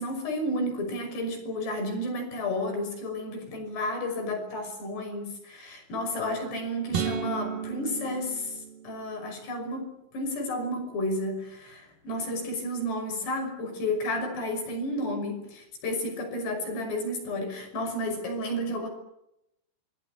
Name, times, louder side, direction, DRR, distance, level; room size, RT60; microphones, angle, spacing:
voice 1, 0.0-8.6 8.8-18.9, left 1 dB, 55° left, 5 dB, 7.8 m, -32 dB
sound 1, 6.9-9.3, right 8 dB, 60° right, 2.6 m, -33 dB
26.5 x 21.0 x 8.7 m, 0.84 s
omnidirectional pair, 5.7 m